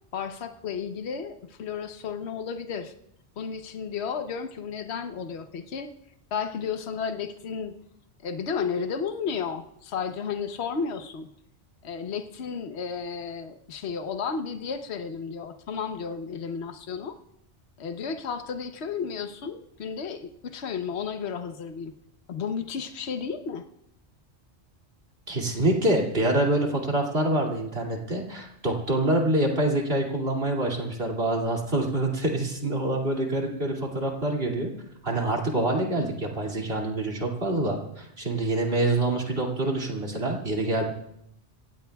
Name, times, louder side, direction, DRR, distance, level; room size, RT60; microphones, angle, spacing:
voice 1, 0.1-2.9 3.4-5.9 6.3-7.8 8.2-11.3 11.8-17.2 17.8-21.9 22.3-23.6, left 6 dB, 70° left, 7 dB, 1.2 m, -33 dB
voice 2, 25.3-34.7 35.0-40.9, right 1 dB, 60° right, -1 dB, 2.8 m, -26 dB
27.0 x 16.5 x 2.3 m, 0.77 s
omnidirectional pair, 1.2 m